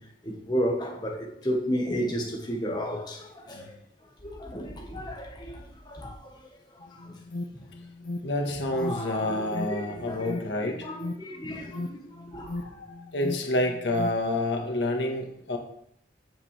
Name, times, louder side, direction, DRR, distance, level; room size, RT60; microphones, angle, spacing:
voice 1, 0.2-3.7 4.2-6.3 6.9-7.1 8.8-12.5, equal, 25° left, 1.4 m, -33 dB
Alarm, 6.8-14.3, left 2 dB, 50° left, 0.6 m, -38 dB
voice 2, 8.2-10.9 12.5-15.6, left 1 dB, 80° left, 1.5 m, -29 dB
8.6 x 7.6 x 3.4 m
head